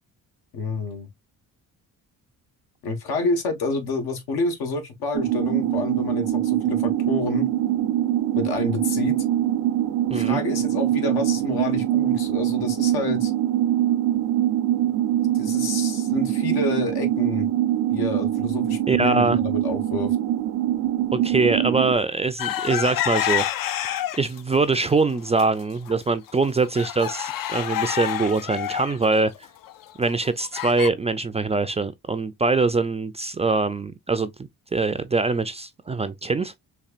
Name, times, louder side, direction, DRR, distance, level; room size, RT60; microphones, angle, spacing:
voice 1, 0.5-1.1 2.8-7.5 8.3-9.1 10.1-13.3 14.9-15.0 15.3-17.5 17.9-20.2, left 3 dB, 85° left, 1.4 m, -28 dB
sound 1, 5.1-21.9, right 12 dB, 75° right, 0.5 m, -23 dB
voice 2, 18.9-19.4 21.1-23.5 24.1-29.3 30.0-34.3 34.7-36.5, right 3 dB, 20° right, 0.3 m, -23 dB
sound 2, 22.4-24.4 24.8-25.4 25.9-26.0 26.3-30.9, left 12 dB, 60° left, 0.5 m, -28 dB
4.3 x 2.9 x 2.4 m
cardioid pair, 95°, 37 cm